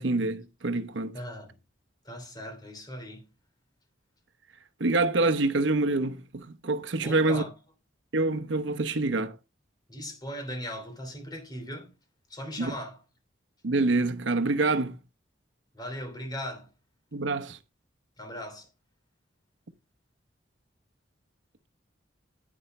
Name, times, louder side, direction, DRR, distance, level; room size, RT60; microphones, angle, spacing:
voice 1, 0.0-1.2 4.8-7.4 8.1-9.4 12.6-12.7 13.6-15.0 17.1-17.6, right 2 dB, 75° right, 0.9 m, -26 dB
voice 2, 1.1-1.6 2.0-3.3 7.0-7.5 9.9-11.9 12.3-13.0 15.7-16.7 18.2-18.7, equal, 20° left, 3.0 m, -38 dB
10.0 x 9.4 x 3.2 m
head